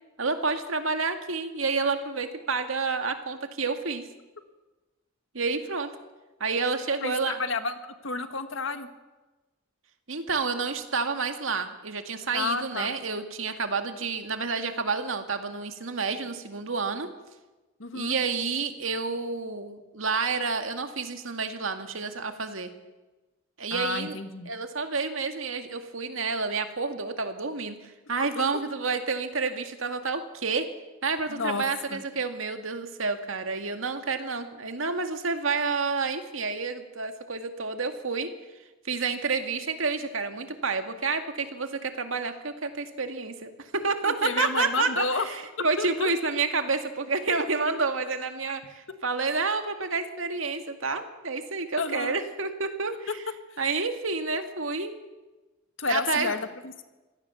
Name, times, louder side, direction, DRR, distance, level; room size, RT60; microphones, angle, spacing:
voice 1, 0.2-4.0 5.3-5.9 6.4-7.4 10.1-17.1 17.9-22.7 23.6-24.2 24.5-30.7 31.0-38.3 38.9-53.1 53.6-54.9 55.9-56.3, right 4 dB, 75° right, 7 dB, 2.1 m, -29 dB
voice 2, 7.0-8.9 12.3-12.9 17.8-18.2 23.7-24.5 28.2-28.3 31.3-31.6 31.9-32.0 44.0-45.3 45.8-46.4 51.8-52.2 53.5-53.6 55.8-56.8, left 4 dB, 65° left, 9 dB, 1.8 m, -31 dB
24.5 x 17.0 x 7.0 m, 1.1 s
head